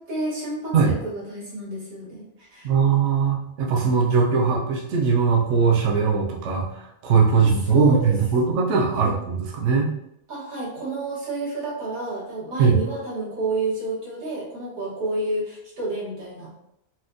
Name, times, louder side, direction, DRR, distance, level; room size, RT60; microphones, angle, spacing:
voice 1, 0.0-2.7 7.3-8.2 9.0-9.1 10.3-16.6, right 2 dB, 85° right, -6 dB, 1.7 m, -30 dB
voice 2, 2.6-9.9 12.6-12.8, right 5 dB, 65° right, -1 dB, 0.8 m, -20 dB
4.2 x 2.2 x 2.5 m, 0.80 s
omnidirectional pair, 1.4 m